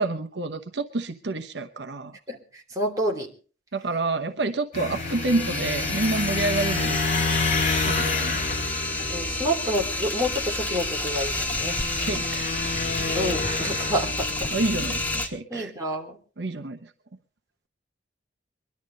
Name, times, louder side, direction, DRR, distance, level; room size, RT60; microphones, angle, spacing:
voice 1, 0.0-2.2 3.7-7.0 7.9-8.5 11.9-12.5 14.5-15.7 16.4-16.9, right 3 dB, 70° right, 7 dB, 0.9 m, -28 dB
voice 2, 2.7-3.3 9.1-11.8 13.1-14.5 15.5-16.2, equal, 20° right, 0 dB, 2.9 m, -28 dB
sound 1, 4.7-15.2, left 3 dB, 40° left, 2.4 m, -29 dB
sound 2, 4.9-15.3, left 2 dB, 10° left, 1.5 m, -30 dB
23.0 x 12.0 x 4.0 m, 0.38 s
head